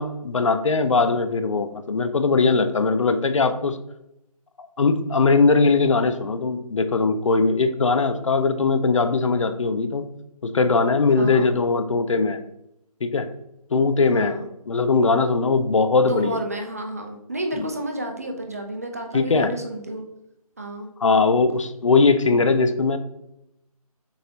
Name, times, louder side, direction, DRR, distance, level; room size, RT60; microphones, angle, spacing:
voice 1, 0.0-3.8 4.6-10.0 10.4-12.4 13.0-13.3 13.7-14.4 14.7-16.4 17.6-17.7 19.1-19.5 21.0-23.0, left 4 dB, 55° left, 9 dB, 0.4 m, -20 dB
voice 2, 11.1-11.5 14.1-14.5 16.1-20.0 20.6-20.9, right 1 dB, 25° right, 3 dB, 0.4 m, -31 dB
6.8 x 2.6 x 2.8 m, 0.85 s
figure-of-eight pair, 160°, 20 cm